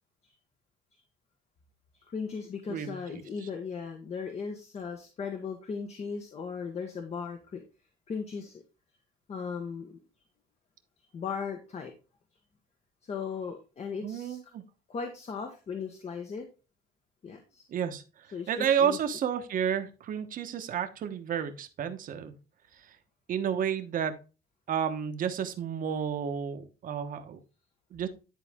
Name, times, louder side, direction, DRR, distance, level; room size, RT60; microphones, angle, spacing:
voice 1, 2.1-7.6 8.1-8.6 9.3-10.0 11.1-11.9 13.0-14.4 14.9-16.4 17.2-17.7 18.3-19.0, left 5 dB, 40° left, 4 dB, 1.2 m, -37 dB
voice 2, 2.7-3.5 14.0-14.6 17.7-22.3 22.8-23.0 23.3-24.1 24.7-27.4 27.9-28.1, right 8 dB, 55° right, 8 dB, 1.1 m, -31 dB
10.5 x 4.1 x 3.6 m, 0.32 s
cardioid pair, 110°, 17 cm